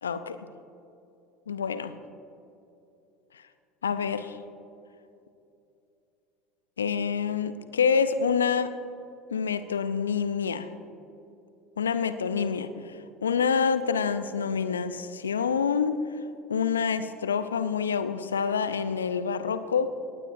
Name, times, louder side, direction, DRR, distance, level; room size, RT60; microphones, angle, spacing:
voice 1, 0.0-0.5 1.5-1.9 3.8-4.4 6.8-8.7 9.3-10.7 11.8-12.7 13.2-16.0 16.5-19.9, left 6 dB, 80° left, 12 dB, 0.6 m, -27 dB
18.5 x 16.5 x 2.7 m, 2.8 s
figure-of-eight pair, 70°, 0 cm